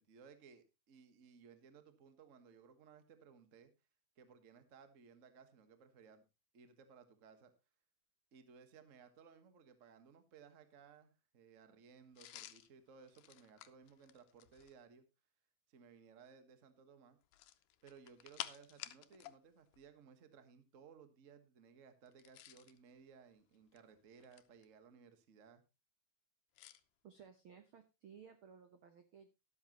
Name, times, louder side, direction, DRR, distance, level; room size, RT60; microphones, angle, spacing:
voice 1, 0.0-3.7 4.2-6.2 6.5-7.5 8.3-15.0 15.7-17.2 17.8-25.6, right 6 dB, 45° right, 9 dB, 1.0 m, -61 dB
sound 1, 12.2-14.8 17.2-19.4 19.7-19.8 22.1-22.8 23.5-24.7 26.6-26.8, left 14 dB, 85° left, 2.3 m, -52 dB
voice 2, 27.0-29.3, right 7 dB, 65° right, 8 dB, 1.3 m, -58 dB
13.0 x 12.0 x 3.0 m, 0.25 s
omnidirectional pair, 3.7 m